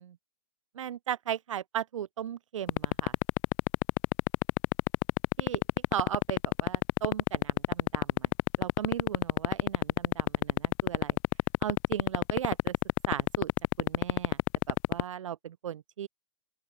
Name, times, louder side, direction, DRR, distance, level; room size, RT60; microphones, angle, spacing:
voice 1, 0.7-3.1 5.4-5.6 5.9-8.3 8.6-11.2 11.6-12.7 13.1-13.5 13.8-14.4 14.7-16.1, right 10 dB, 70° right, 2.7 m, -37 dB
sound 1, 2.7-15.0, left 36 dB, 30° left, 1.0 m, -24 dB
open air
hypercardioid pair, 155°, 17 cm